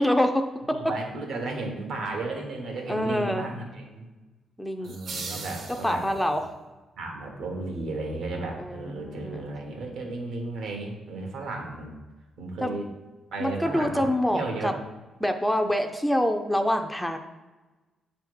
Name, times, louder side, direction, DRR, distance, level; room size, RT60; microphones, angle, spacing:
voice 1, 0.0-0.8 2.9-3.5 4.6-5.0 5.8-6.4 8.6-9.5 12.6-12.8 13.4-14.7 15.2-17.2, left 1 dB, 5° left, 6 dB, 0.4 m, -26 dB
voice 2, 0.6-4.0 4.8-6.0 7.0-11.9 12.4-12.9 13.3-14.8, right 2 dB, 80° right, 1 dB, 1.4 m, -34 dB
sound 1, 4.8-6.4, right 4 dB, 60° right, 0.9 m, -38 dB
7.7 x 3.4 x 4.8 m, 1.2 s
cardioid pair, 130°, 0 cm